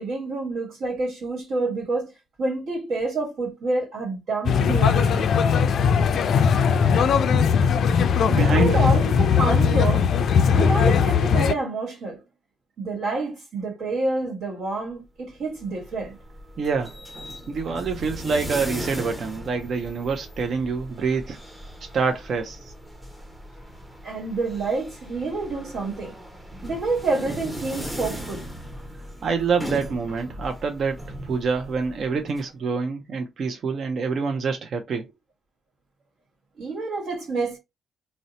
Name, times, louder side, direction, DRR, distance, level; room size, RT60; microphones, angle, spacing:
voice 1, 0.0-2.1 2.4-5.3 8.3-10.1 10.5-12.2 12.8-16.2 24.0-26.1 26.6-28.5 36.6-37.6, right 3 dB, 75° right, 1.3 m, -28 dB
sound 1, 4.4-11.5, left 6 dB, 65° left, 0.3 m, -19 dB
voice 2, 8.2-8.8 16.6-16.9 17.5-21.4 21.9-22.6 29.2-31.0 31.2-35.0, right 5 dB, 50° right, 0.4 m, -26 dB
sound 2, 15.4-32.4, equal, 5° right, 0.6 m, -38 dB
2.6 x 2.0 x 3.9 m
cardioid pair, 125°, 0 cm